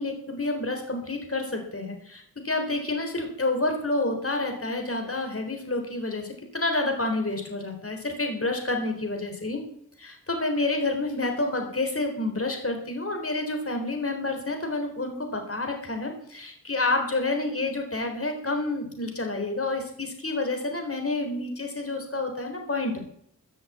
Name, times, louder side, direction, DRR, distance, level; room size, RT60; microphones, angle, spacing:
voice 1, 0.0-9.6 10.0-22.9, left 2 dB, 45° left, 4 dB, 4.0 m, -29 dB
14.5 x 7.9 x 8.6 m, 0.67 s
wide cardioid pair, 80°, 32 cm